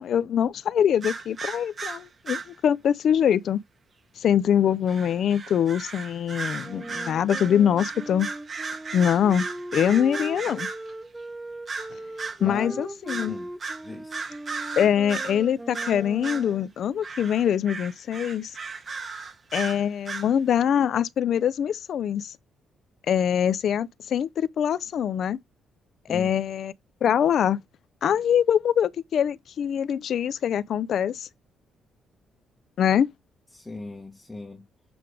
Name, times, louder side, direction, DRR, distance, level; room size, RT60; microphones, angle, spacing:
voice 1, 0.0-3.6 4.2-8.3 8.9-9.5 9.7-10.7 12.4-13.3 14.8-18.6 19.5-22.3 23.1-25.4 26.1-26.7 27.0-27.6 28.0-31.3 32.8-33.1, left 9 dB, 65° left, 0.6 m, -23 dB
sound 1, 1.0-2.5 4.9-10.9 11.7-12.4 13.1-13.3 13.6-15.4 15.7-16.5 17.0-20.3, right 4 dB, 40° right, 2.6 m, -35 dB
Wind instrument woodwind instrument, 6.6-16.7, right 1 dB, 10° right, 0.6 m, -39 dB
voice 2, 12.4-12.8 13.3-13.5 13.8-14.2 26.1-26.3 33.5-34.6, left 2 dB, 15° left, 1.6 m, -38 dB
7.9 x 3.4 x 5.0 m
cardioid pair, 90°, 0 cm